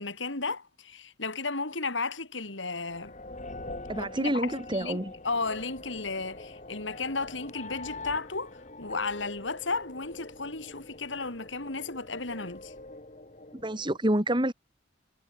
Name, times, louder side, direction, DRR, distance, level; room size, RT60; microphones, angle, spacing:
voice 1, 0.0-3.2 4.0-12.7, left 3 dB, 80° left, 3.5 m, -34 dB
sound 1, 2.6-14.0, left 2 dB, 40° left, 4.0 m, -44 dB
voice 2, 3.9-5.1 13.6-14.5, right 1 dB, 25° right, 3.3 m, -28 dB
head